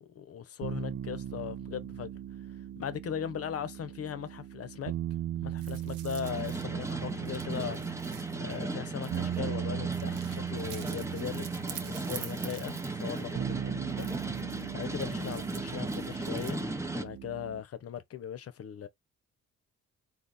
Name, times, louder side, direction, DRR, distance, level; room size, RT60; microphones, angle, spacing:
voice 1, 0.0-2.1 2.8-4.9 5.4-7.8 8.4-14.1 14.7-18.9, left 9 dB, 50° left, 0.9 m, -39 dB
sound 1, 0.6-17.6, right 11 dB, 70° right, 0.8 m, -38 dB
sound 2, 5.6-9.5 9.9-13.4 13.9-16.6, right 9 dB, 85° right, 1.1 m, -48 dB
sound 3, 6.2-17.0, right 2 dB, 10° right, 0.8 m, -37 dB
4.2 x 2.9 x 4.1 m
cardioid pair, 90°, 30 cm